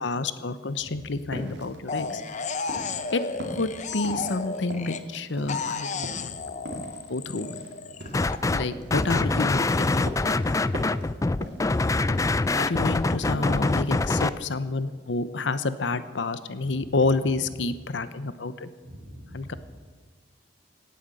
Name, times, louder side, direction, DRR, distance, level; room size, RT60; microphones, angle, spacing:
voice 1, 0.0-2.2 3.1-3.2 3.6-6.6 7.1-7.5 8.5-10.6 12.6-18.7 19.3-19.5, left 3 dB, 75° left, 13 dB, 0.9 m, -29 dB
sound 1, 1.3-3.1 3.4-5.8 6.0-6.4 6.6-9.1 9.4-10.4 10.7-11.1 11.3-11.8 12.1-13.1 13.3-13.8 14.1-14.3, equal, 65° right, 2.6 m, -39 dB
sound 2, 1.9-5.2 5.5-8.4, left 4 dB, 40° left, 0.9 m, -33 dB
voice 2, 6.0-6.4 7.9-8.4 13.3-13.7 16.7-17.0 18.8-19.6, equal, 40° right, -2 dB, 5.6 m, -43 dB
sound 3, 8.1-8.6 8.9-14.3, left 2 dB, 20° left, 0.4 m, -24 dB
17.0 x 9.5 x 7.7 m, 1.5 s
head